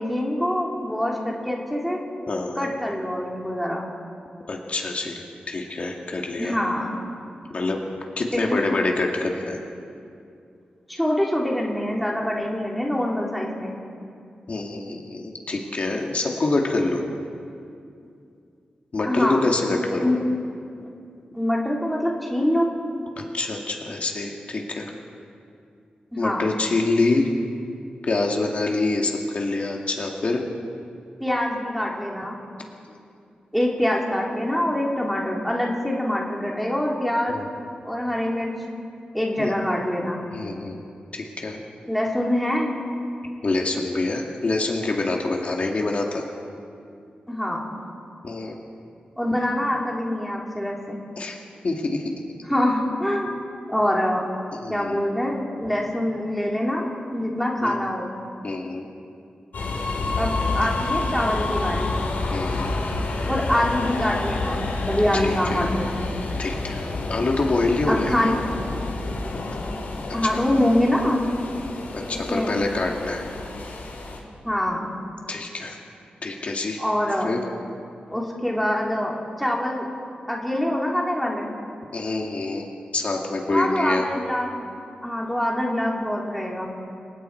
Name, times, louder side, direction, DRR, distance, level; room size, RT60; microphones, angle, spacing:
voice 1, 0.0-2.0 2.6-3.8 6.4-7.0 8.3-8.6 10.9-13.8 19.1-19.5 19.9-20.2 21.3-22.7 26.1-26.5 31.2-32.4 33.5-37.4 37.8-38.6 39.1-40.2 41.9-42.7 47.3-47.7 49.2-51.0 52.5-53.3 53.7-54.3 54.7-58.1 60.2-61.9 63.3-65.8 67.9-68.4 70.1-71.2 72.3-72.6 74.4-74.9 76.8-77.3 78.1-79.9 80.3-81.5 83.5-84.7 85.0-86.7, left 1 dB, ahead, -2 dB, 2.9 m, -24 dB
voice 2, 2.3-2.7 4.5-5.2 5.5-6.6 7.5-7.8 8.2-9.6 14.5-17.0 18.9-20.1 23.2-24.9 26.2-27.3 28.0-30.4 32.9-33.0 37.3-37.5 39.4-39.5 40.3-40.8 41.1-41.6 43.4-46.2 48.2-48.6 51.2-51.4 51.6-52.1 54.5-55.0 57.6-57.7 58.4-58.9 62.3-62.7 65.1-65.7 66.4-68.3 70.2-70.3 71.9-73.2 75.3-75.8 76.2-76.8 77.2-77.4 81.9-84.1, left 2 dB, 45° left, 0 dB, 2.2 m, -26 dB
sound 1, 59.5-74.2, left 3 dB, 90° left, 4.3 m, -29 dB
29.0 x 23.5 x 4.6 m, 2.5 s
wide cardioid pair, 170°, 3 cm